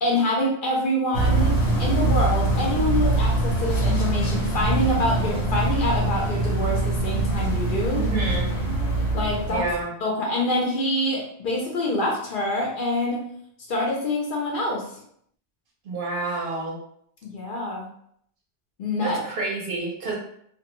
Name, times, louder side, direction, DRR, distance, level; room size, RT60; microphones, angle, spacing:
voice 1, 0.0-8.0 9.1-9.6 10.0-13.2 13.7-14.9 17.2-17.9 18.8-19.2, left 1 dB, 60° left, -2 dB, 0.7 m, -26 dB
sound 1, 1.1-9.8, right 2 dB, 80° left, 1.0 m, -23 dB
voice 2, 7.9-8.5 9.4-9.9 15.8-16.8 19.0-20.1, right 3 dB, 60° right, -2 dB, 0.7 m, -29 dB
2.2 x 2.1 x 2.9 m, 0.68 s
omnidirectional pair, 1.1 m